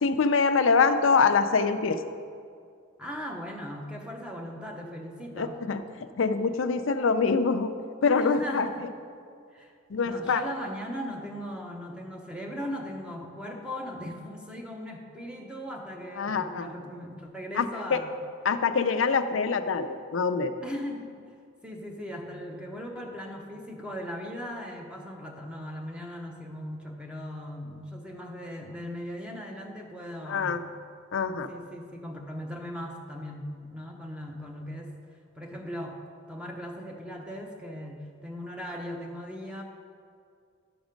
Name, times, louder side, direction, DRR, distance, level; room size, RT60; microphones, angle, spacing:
voice 1, 0.0-2.0 5.4-5.8 6.2-7.7 8.0-8.7 9.9-10.4 16.2-16.7 17.5-18.0 18.4-20.5 30.3-30.6 31.1-31.5, left 5 dB, 85° left, 9 dB, 0.5 m, -24 dB
voice 2, 3.0-5.6 8.1-8.9 9.5-9.7 10.0-18.1 20.6-21.2 21.6-30.7 31.5-34.9 35.3-36.0 36.3-39.6, equal, 5° right, 1 dB, 0.9 m, -38 dB
11.5 x 6.1 x 5.2 m, 2.3 s
head